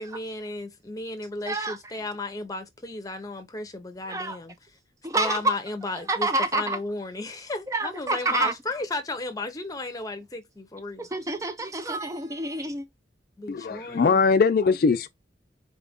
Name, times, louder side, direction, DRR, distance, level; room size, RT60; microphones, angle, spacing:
voice 1, 0.0-4.5 5.1-11.1 13.4-14.2, left 2 dB, 20° left, 0.7 m, -34 dB
voice 2, 1.5-1.8 4.1-4.4 5.0-5.6 6.1-6.8 7.7-8.5 11.0-12.9, right 2 dB, 15° right, 0.4 m, -27 dB
voice 3, 13.5-15.1, left 5 dB, 50° left, 0.3 m, -21 dB
4.2 x 2.5 x 3.5 m
head